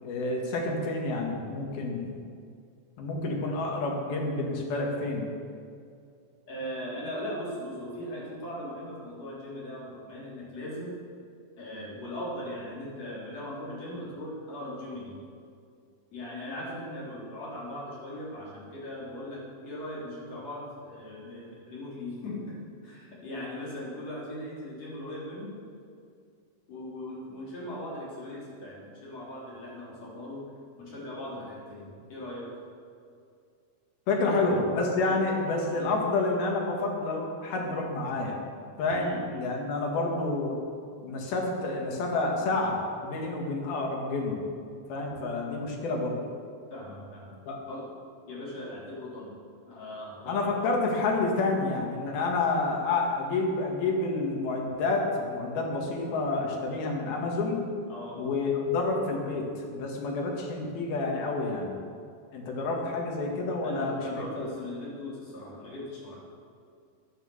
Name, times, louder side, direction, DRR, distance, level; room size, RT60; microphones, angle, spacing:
voice 1, 0.0-2.2 3.0-5.3 34.1-38.4 38.8-40.6 41.0-44.4 44.9-46.2 47.5-47.6 50.3-57.7 58.2-61.8 62.3-64.1 64.4-64.5, left 3 dB, 80° left, 0 dB, 3.7 m, -29 dB
voice 2, 6.5-11.0 11.6-15.2 16.1-22.6 22.8-25.6 26.7-32.5 34.1-34.5 35.0-35.2 35.7-35.9 38.9-39.2 46.7-47.3 47.7-47.9 48.3-49.4 49.7-50.7 57.9-58.3 63.6-66.2, left 1 dB, 45° left, -6 dB, 4.5 m, -39 dB
10.5 x 10.0 x 7.0 m, 2.3 s
omnidirectional pair, 4.2 m